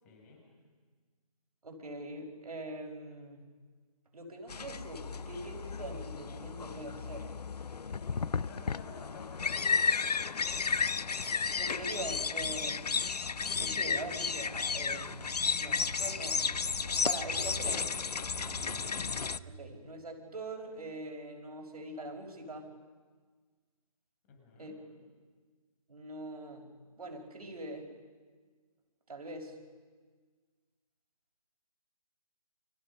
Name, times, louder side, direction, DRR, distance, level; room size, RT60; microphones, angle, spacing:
voice 1, 0.0-0.5 7.7-10.9 18.4-18.7 24.2-24.8, left 3 dB, 25° left, 1 dB, 5.6 m, -55 dB
voice 2, 1.6-3.4 4.1-7.3 11.6-12.9 13.6-15.3 15.6-16.4 17.0-17.8 19.5-22.7 24.6-24.7 25.9-26.7 27.0-27.9 29.1-29.5, right 2 dB, 75° right, 3 dB, 5.8 m, -43 dB
sound 1, 4.5-19.4, left 5 dB, 85° left, 0.7 m, -33 dB
sound 2, 12.7-19.5, right 6 dB, 20° right, 0.6 m, -50 dB
29.0 x 26.0 x 5.6 m, 1.5 s
figure-of-eight pair, 160°, 20 cm